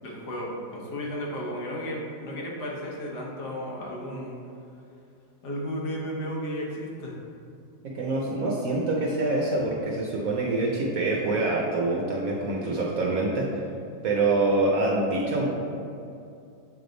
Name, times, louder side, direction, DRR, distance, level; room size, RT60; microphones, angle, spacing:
voice 1, 0.0-4.4 5.4-7.2, equal, 60° left, -2 dB, 1.5 m, -34 dB
voice 2, 7.8-13.5 14.0-15.5, right 2 dB, 65° right, -3 dB, 0.9 m, -25 dB
7.6 x 3.4 x 3.9 m, 2.6 s
omnidirectional pair, 2.1 m